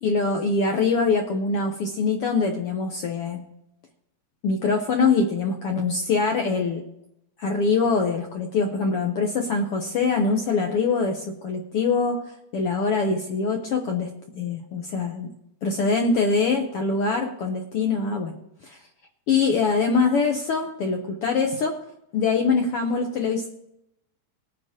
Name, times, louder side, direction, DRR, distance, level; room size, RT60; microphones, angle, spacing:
voice 1, 0.0-3.4 4.4-6.8 7.4-15.3 15.6-18.3 18.6-18.8 19.3-21.8 22.1-23.5, left 4 dB, 70° left, 2 dB, 1.4 m, -23 dB
19.5 x 9.5 x 2.9 m, 0.80 s
omnidirectional pair, 3.7 m